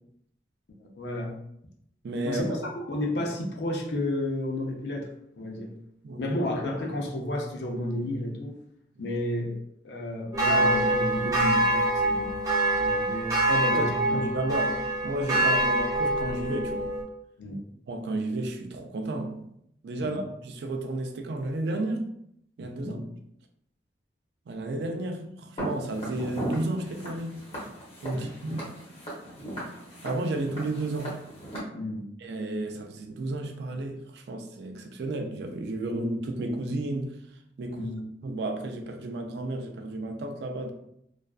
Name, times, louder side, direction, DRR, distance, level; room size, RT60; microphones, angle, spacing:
voice 1, 0.8-1.4 2.2-5.1 5.4-5.7 6.2-8.6 9.0-9.5 9.8-12.3 12.8-13.3 13.7-14.2 17.4-17.6 20.0-20.2 22.8-23.1 28.1-28.3 31.7-32.1 37.7-38.0, left 1 dB, 75° left, 0.5 m, -31 dB
voice 2, 2.0-2.6 6.0-6.2 13.5-16.9 17.9-19.4 19.8-22.1 22.6-23.0 24.5-27.5 28.0-28.7 30.0-31.2 32.2-37.2 37.6-37.9 38.2-40.7, right 2 dB, 70° right, 0.3 m, -32 dB
sound 1, 10.3-17.0, right 1 dB, 20° right, 0.5 m, -25 dB
Walk footsteps, 25.6-31.6, right 1 dB, 35° left, 0.8 m, -37 dB
2.4 x 2.2 x 2.3 m
head